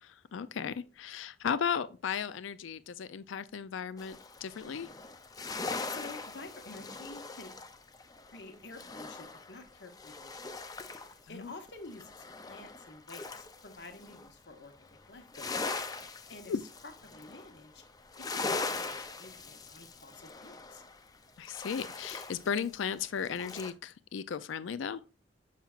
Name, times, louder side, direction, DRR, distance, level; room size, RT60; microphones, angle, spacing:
voice 1, 0.0-4.9 11.3-11.5 16.5-16.6 21.4-25.0, left 7 dB, 85° left, 0.4 m, -35 dB
sound 1, 4.0-11.2 11.5-14.3 14.7-23.7, left 3 dB, 20° left, 0.4 m, -41 dB
voice 2, 5.9-7.5 8.3-10.6 11.1-15.9 16.3-16.5 17.0-17.8 18.3-20.8, left 3 dB, 60° left, 1.2 m, -50 dB
7.3 x 5.8 x 2.4 m
head